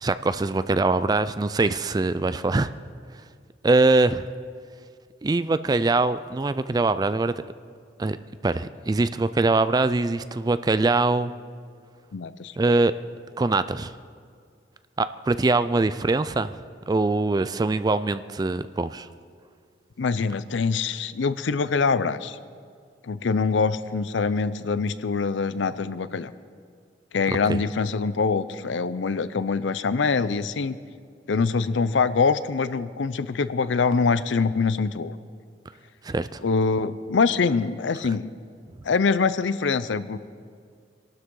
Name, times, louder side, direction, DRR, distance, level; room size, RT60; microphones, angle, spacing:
voice 1, 0.0-2.7 3.6-4.3 5.2-7.3 8.0-8.2 8.4-11.3 12.6-12.9 13.4-13.9 15.0-16.6 16.9-19.1 27.5-27.6 36.0-36.4, right 3 dB, 20° right, 13 dB, 0.3 m, -23 dB
voice 2, 12.1-12.5 20.0-22.4 23.0-26.3 27.1-30.8 31.3-35.1 36.4-38.3 38.8-40.2, left 4 dB, 85° left, 15 dB, 0.5 m, -24 dB
23.0 x 12.0 x 3.8 m, 2.1 s
head